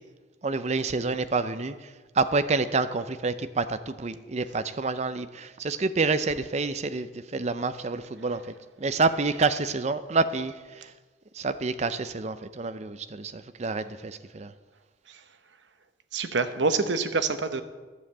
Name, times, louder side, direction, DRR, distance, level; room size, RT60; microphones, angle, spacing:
voice 1, 0.4-1.7 2.2-8.4 8.8-10.8 11.3-14.5, right 3 dB, 40° right, 11 dB, 0.6 m, -28 dB
voice 2, 16.1-17.6, right 4 dB, 80° right, 9 dB, 0.9 m, -26 dB
11.5 x 7.4 x 7.8 m, 1.3 s
head